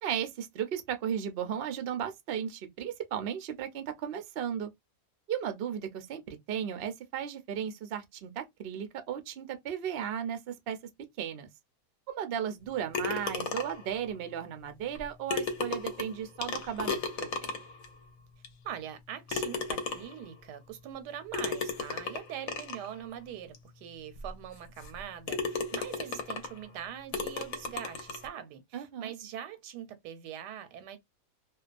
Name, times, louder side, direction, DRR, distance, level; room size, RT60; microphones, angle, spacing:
voice 1, 0.0-4.7 5.3-10.8 11.2-11.5 12.1-17.5 28.7-29.1, right 9 dB, 65° right, 0.5 m, -35 dB
sound 1, 12.9-13.9 14.9-15.0 15.3-17.8 18.4-18.5 19.3-20.2 21.3-22.9 23.5-23.6 24.2-24.3 24.8-25.0 25.3-26.6 27.1-28.3, left 4 dB, 65° left, 1.0 m, -34 dB
voice 2, 18.6-31.0, right 9 dB, 90° right, 1.2 m, -43 dB
2.7 x 2.2 x 2.4 m
omnidirectional pair, 1.8 m